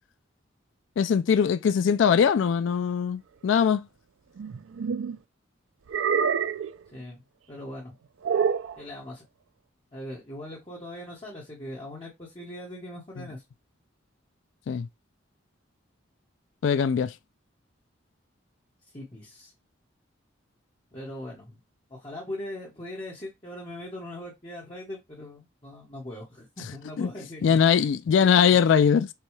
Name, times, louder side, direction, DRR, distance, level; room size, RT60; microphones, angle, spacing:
voice 1, 1.0-3.9 13.2-13.3 14.7-14.9 16.6-17.2 26.6-26.7 27.0-27.1 27.4-29.1, left 7 dB, 70° left, 0.3 m, -21 dB
sound 1, 4.4-5.2 5.9-6.7 8.2-8.8, right 6 dB, 80° right, 0.4 m, -26 dB
voice 2, 6.9-7.2 7.5-7.9 8.8-9.2 9.9-13.4 18.9-19.5 20.9-21.5 21.9-27.6, left 1 dB, 25° left, 1.1 m, -40 dB
6.7 x 2.3 x 3.1 m
head